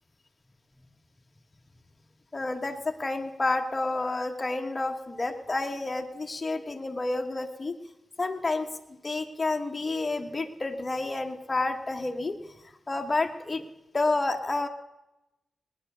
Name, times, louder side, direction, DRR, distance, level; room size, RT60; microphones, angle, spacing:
voice 1, 2.3-7.8 8.2-12.6 12.9-13.6 13.9-14.7, left 2 dB, 20° left, 5 dB, 1.3 m, -30 dB
20.5 x 10.5 x 6.7 m, 0.97 s
wide cardioid pair, 175°, 0 cm